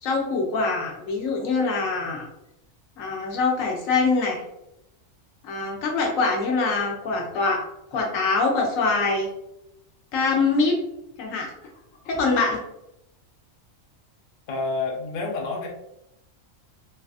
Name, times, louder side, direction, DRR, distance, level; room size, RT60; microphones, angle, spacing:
voice 1, 0.0-2.3 3.0-4.4 5.4-7.6 7.9-9.3 10.1-10.7 11.2-11.5 12.1-12.6, left 3 dB, 85° left, 0 dB, 1.1 m, -24 dB
voice 2, 14.5-15.7, left 3 dB, 50° left, 0 dB, 0.6 m, -28 dB
3.2 x 2.3 x 2.4 m, 0.83 s
omnidirectional pair, 1.3 m